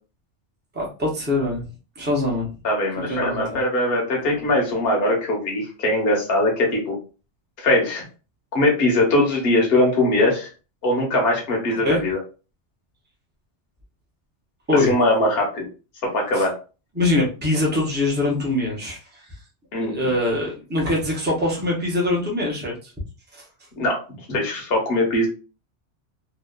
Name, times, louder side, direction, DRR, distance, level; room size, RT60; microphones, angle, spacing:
voice 1, 0.7-1.6 2.0-2.5 3.1-3.6 4.4-4.5 11.8-12.1 14.7-14.9 16.3-16.5 16.9-19.2 19.8-22.9 23.3-23.4, left 2 dB, 10° right, -2 dB, 0.7 m, -23 dB
voice 2, 2.6-6.9 7.6-8.0 8.5-10.5 10.8-12.2 14.9-15.6 16.1-16.5 19.7-19.9 23.8-24.0 24.3-25.3, left 1 dB, 60° left, -1 dB, 1.1 m, -21 dB
2.8 x 2.3 x 2.2 m, 0.34 s
omnidirectional pair, 1.2 m